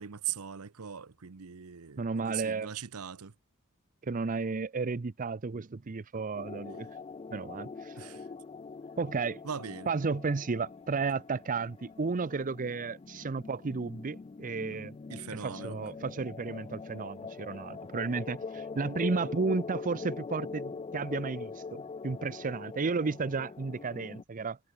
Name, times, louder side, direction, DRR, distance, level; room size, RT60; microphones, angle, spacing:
voice 1, 0.0-3.3 8.0-8.3 9.4-9.9 15.1-15.8, right 8 dB, 75° right, 0.8 m, -40 dB
voice 2, 2.0-2.7 4.0-6.9 7.3-8.2 9.0-9.4 9.9-15.0 15.3-24.6, right 4 dB, 40° right, 0.6 m, -33 dB
sound 1, 6.3-24.2, left 4 dB, 25° left, 0.3 m, -43 dB
head